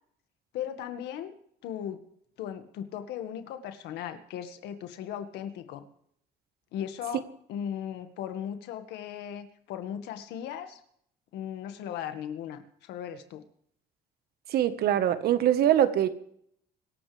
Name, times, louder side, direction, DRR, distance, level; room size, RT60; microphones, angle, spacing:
voice 1, 0.5-1.3 1.6-2.0 2.4-5.9 6.7-7.2 7.5-10.8 11.3-13.4, left 9 dB, 85° left, 8 dB, 1.9 m, -37 dB
voice 2, 14.5-16.1, right 11 dB, 65° right, 11 dB, 1.5 m, -23 dB
25.0 x 14.0 x 3.5 m, 0.68 s
cardioid pair, 110°, 17 cm